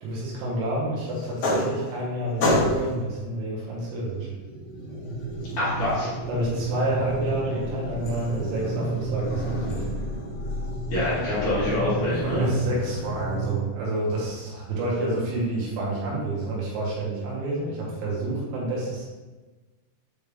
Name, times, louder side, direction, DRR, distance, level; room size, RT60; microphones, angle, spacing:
voice 1, 0.0-4.3 6.3-9.8 12.2-19.1, right 1 dB, 80° right, -5 dB, 3.9 m, -29 dB
sound 1, 1.2-2.1 2.4-3.0 4.2-13.5, right 1 dB, 75° left, 1.8 m, -29 dB
voice 2, 5.6-6.1 10.9-12.4, left 1 dB, 55° left, -9 dB, 2.7 m, -25 dB
8.1 x 3.3 x 3.6 m, 1.2 s
omnidirectional pair, 5.4 m